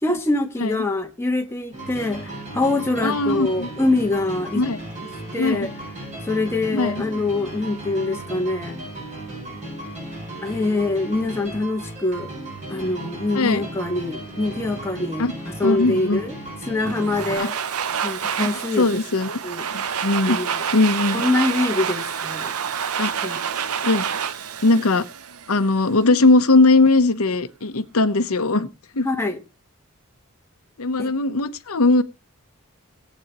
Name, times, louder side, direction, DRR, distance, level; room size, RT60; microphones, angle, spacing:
voice 1, 0.0-4.6 5.3-5.7 6.2-8.8 10.4-12.3 12.7-16.4 16.7-17.5 18.0-19.0 19.4-19.6 20.2-20.6 21.1-22.5 23.2-23.4 29.0-29.4 31.0-31.1, left 2 dB, 10° left, 1.3 m, -24 dB
sound 1, 1.7-17.4, right 1 dB, 35° right, 7.8 m, -35 dB
voice 2, 3.0-3.7 4.5-4.8 5.4-5.7 6.7-7.0 13.3-13.7 15.2-15.3 15.6-16.2 17.4-17.5 18.4-18.5 18.8-19.4 19.7-20.4 20.7-21.3 23.0-23.1 23.8-24.0 24.6-25.0 25.5-28.7 28.9-29.1 30.8-32.0, left 2 dB, 80° left, 0.9 m, -19 dB
Domestic sounds home sounds, 16.9-25.8, right 7 dB, 85° right, 0.7 m, -28 dB
18.5 x 8.6 x 3.0 m
head